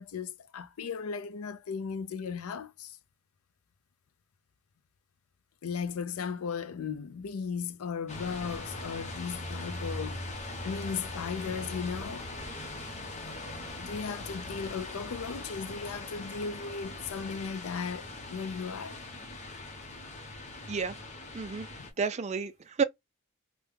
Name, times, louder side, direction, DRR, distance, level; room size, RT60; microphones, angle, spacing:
voice 1, 0.0-3.0 5.6-12.3 13.8-19.0 21.8-21.9, left 6 dB, 85° left, 0.5 m, -36 dB
sound 1, 8.1-21.9, left 2 dB, 35° left, 0.8 m, -41 dB
voice 2, 21.3-21.7 22.0-22.8, right 5 dB, 30° right, 0.4 m, -30 dB
3.4 x 2.1 x 3.3 m
head